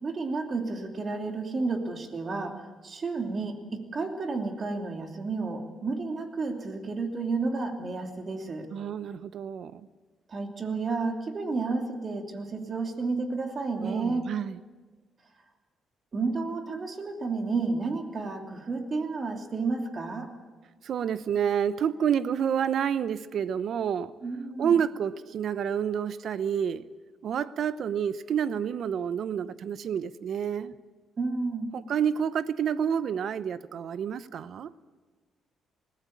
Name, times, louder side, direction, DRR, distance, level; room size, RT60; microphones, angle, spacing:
voice 1, 0.0-8.7 10.3-14.3 16.1-20.3 24.2-24.8 31.2-31.7, right 3 dB, 40° right, 2.9 m, -31 dB
voice 2, 8.7-9.9 13.8-14.6 20.8-24.1 24.6-26.8 27.2-30.7 31.7-34.7, right 8 dB, 65° right, 0.8 m, -29 dB
20.5 x 15.5 x 8.7 m
cardioid pair, 90°, 0 cm